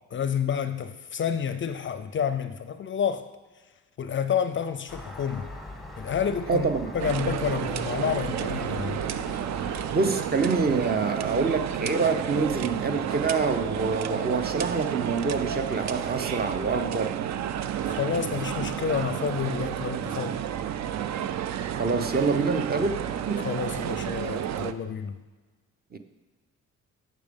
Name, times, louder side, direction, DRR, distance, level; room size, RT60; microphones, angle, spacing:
voice 1, 0.1-3.3 4.0-5.5 6.0-9.0 17.8-20.4 23.4-25.2, left 7 dB, 40° left, 0.5 m, -29 dB
Gull seagull, 4.9-9.9, left 1 dB, ahead, 1.0 m, -41 dB
voice 2, 6.5-6.9 9.9-17.2 21.7-22.9 23.3-23.5 25.9-26.0, right 4 dB, 30° right, 0.8 m, -26 dB
sound 1, 7.0-24.7, right 9 dB, 65° right, 0.5 m, -31 dB
7.6 x 6.5 x 5.2 m
cardioid pair, 90°, 30 cm